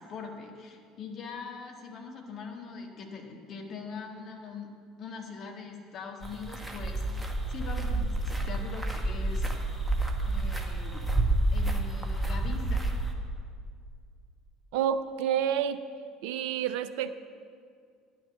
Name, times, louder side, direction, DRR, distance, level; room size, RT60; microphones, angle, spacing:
voice 1, 0.0-4.7 5.0-7.1 7.5-9.5 10.2-11.1 11.5-12.9, left 5 dB, 45° left, 2 dB, 1.7 m, -42 dB
sound 1, 6.2-13.1, right 2 dB, 5° right, 1.5 m, -29 dB
voice 2, 14.7-15.8 16.2-17.1, right 9 dB, 65° right, 12 dB, 0.5 m, -29 dB
10.5 x 6.2 x 8.2 m, 2.2 s
figure-of-eight pair, 60°, 0 cm